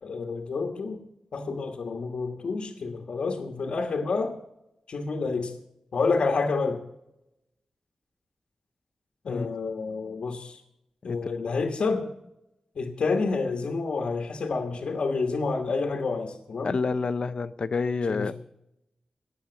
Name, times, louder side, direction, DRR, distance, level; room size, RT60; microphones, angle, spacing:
voice 1, 0.0-1.0 1.3-4.4 4.9-5.5 5.9-6.8 9.2-10.6 11.0-12.1 12.7-16.8 18.1-18.3, left 4 dB, 70° left, 4 dB, 1.4 m, -29 dB
voice 2, 16.6-18.3, left 4 dB, 50° left, 15 dB, 0.5 m, -28 dB
18.5 x 7.3 x 6.8 m, 0.86 s
wide cardioid pair, 165°, 2 cm